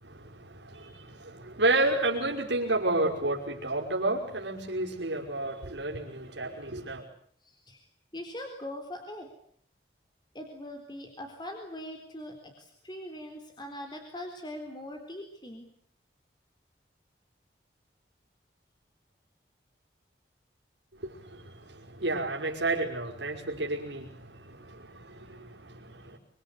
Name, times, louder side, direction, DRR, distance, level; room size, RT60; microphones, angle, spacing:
voice 1, 0.0-7.0 21.0-26.2, right 2 dB, 85° right, 5.7 m, -31 dB
voice 2, 7.4-7.8 8.1-9.3 10.3-15.7, left 1 dB, 25° left, 4.0 m, -41 dB
26.0 x 25.5 x 8.4 m
head